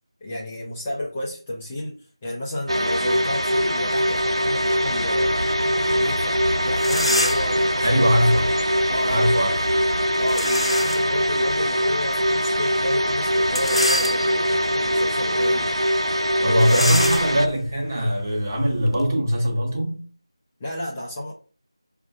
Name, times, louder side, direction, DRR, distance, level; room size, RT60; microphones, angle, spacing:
voice 1, 0.2-2.0 2.2-5.4 5.7-8.1 8.9-9.3 10.2-15.7 16.4-16.9 20.6-21.3, left 1 dB, 10° left, 0.4 m, -31 dB
sound 1, 2.7-17.5, equal, 85° right, 0.7 m, -22 dB
sound 2, 5.1-10.2, right 1 dB, 55° right, 1.3 m, -35 dB
sound 3, 6.4-6.5 6.7-7.6 10.3-11.1 11.7-11.8 13.4-14.6 15.1-15.3 15.6-15.7 16.6-19.1, left 1 dB, 80° left, 0.5 m, -27 dB
voice 2, 7.8-8.5 9.1-9.6 16.4-20.0, equal, 30° right, 1.1 m, -21 dB
4.9 x 2.5 x 2.4 m
figure-of-eight pair, 170°, 3 cm